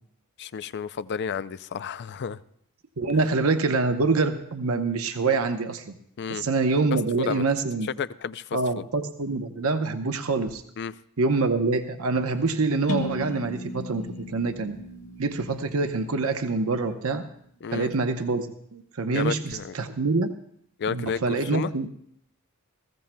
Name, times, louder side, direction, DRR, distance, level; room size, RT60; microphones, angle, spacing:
voice 1, 0.4-2.4 6.2-6.4 7.2-7.4 7.8-8.8 10.8-10.9 17.6-17.9 19.1-19.7 20.8-21.7, left 6 dB, 50° left, 15 dB, 0.4 m, -31 dB
voice 2, 3.0-5.9 6.3-7.9 8.5-10.6 11.2-14.8 15.2-17.2 17.7-20.3 20.9-21.9, right 3 dB, 70° right, 7 dB, 0.8 m, -25 dB
sound 1, 12.9-16.7, left 1 dB, 70° left, 1.4 m, -36 dB
20.5 x 15.0 x 2.2 m, 0.69 s
head